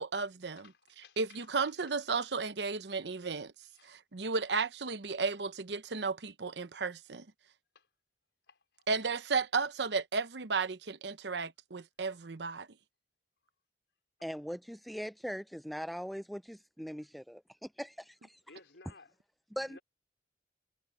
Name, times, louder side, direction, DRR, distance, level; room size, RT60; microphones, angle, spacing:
voice 1, 0.0-0.7 1.2-3.5 3.8-7.3 8.9-12.7, right 4 dB, 75° right, 0.9 m, -34 dB
voice 2, 0.5-1.5 1.8-1.9 3.7-3.9 5.2-5.3 7.7-7.9 8.5-8.8 17.0-17.1 18.5-19.1 19.7-19.8, left 3 dB, 85° left, 4.5 m, -58 dB
voice 3, 14.2-18.4 19.6-19.8, equal, ahead, 0.3 m, -41 dB
head